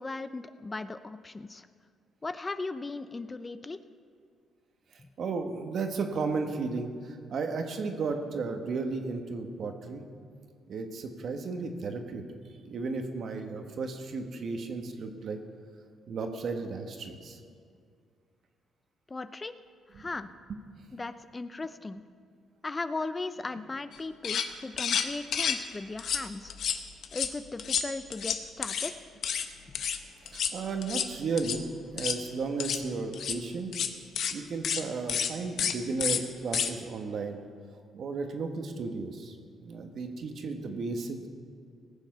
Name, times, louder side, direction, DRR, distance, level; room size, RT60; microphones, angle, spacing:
voice 1, 0.0-1.7 2.2-3.8 19.1-19.5 20.0-20.3 20.9-22.0 22.6-26.5 27.1-28.9, left 3 dB, 25° left, 12 dB, 0.5 m, -37 dB
voice 2, 5.2-10.0 10.7-12.2 12.7-15.4 16.1-17.4 19.9-20.0 20.5-20.6 30.3-31.7 31.9-33.7 34.3-37.4 37.9-41.3, right 4 dB, 60° right, 5 dB, 1.4 m, -34 dB
sound 1, 23.9-24.0 24.2-24.5 24.8-25.6 26.0-26.2 26.5-27.3 27.6-28.9 29.2-29.4 29.7-30.0 30.3-30.5 30.8-31.1 31.4-31.6 31.9-32.2 32.6-32.8 33.1-33.4 33.7-33.9 34.1-34.3 34.6-34.8 35.1-35.3 35.6-35.7 36.0-36.2 36.5-36.7, left 7 dB, 65° left, 0.8 m, -30 dB
19.0 x 7.2 x 5.5 m, 2.2 s
cardioid pair, 90°, 0 cm